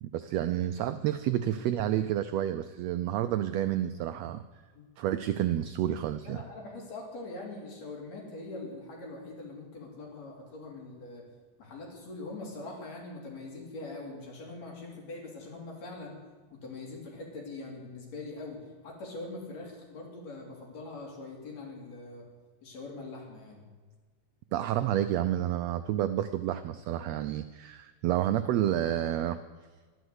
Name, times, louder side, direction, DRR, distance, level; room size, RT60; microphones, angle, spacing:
voice 1, 0.0-4.4 5.0-6.4 24.5-29.4, right 12 dB, 85° right, 11 dB, 1.5 m, -29 dB
voice 2, 6.3-11.2 11.6-16.2 16.5-22.2 22.6-23.6, left 2 dB, 60° left, -2 dB, 4.4 m, -42 dB
12.0 x 11.0 x 8.1 m, 1.4 s
omnidirectional pair, 3.6 m